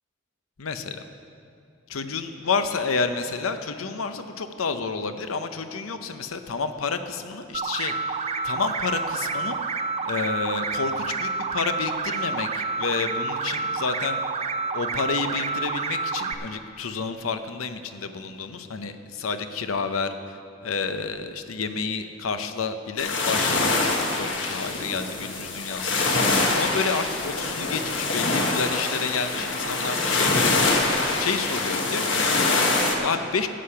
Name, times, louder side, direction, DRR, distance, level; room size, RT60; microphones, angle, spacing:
voice 1, 0.6-1.0 1.9-9.6 10.0-14.2 14.7-30.8 31.2-33.5, left 5 dB, 90° left, 9 dB, 0.7 m, -30 dB
sound 1, 7.5-16.3, right 4 dB, 30° right, 0.5 m, -29 dB
sound 2, 23.0-32.9, left 3 dB, 60° left, 1.3 m, -24 dB
12.5 x 8.6 x 5.7 m, 2.5 s
head